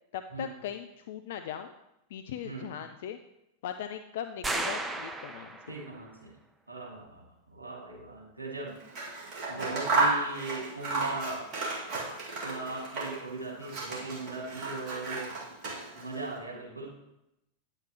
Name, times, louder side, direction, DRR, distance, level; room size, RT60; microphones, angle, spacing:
voice 1, 0.1-1.7 2.1-3.2 3.6-5.8, left 9 dB, 55° left, 8 dB, 0.4 m, -39 dB
voice 2, 2.4-2.8 5.7-6.4 6.7-8.8 9.5-11.5 12.3-15.3 15.9-16.9, right 3 dB, 80° right, -3 dB, 2.3 m, -39 dB
sound 1, 4.4-5.9, right 2 dB, 10° right, 0.8 m, -34 dB
Scissors, 8.8-13.3 13.6-16.2, right 3 dB, 40° right, 2.1 m, -33 dB
9.5 x 7.7 x 3.0 m, 0.87 s
figure-of-eight pair, 90°, 0 cm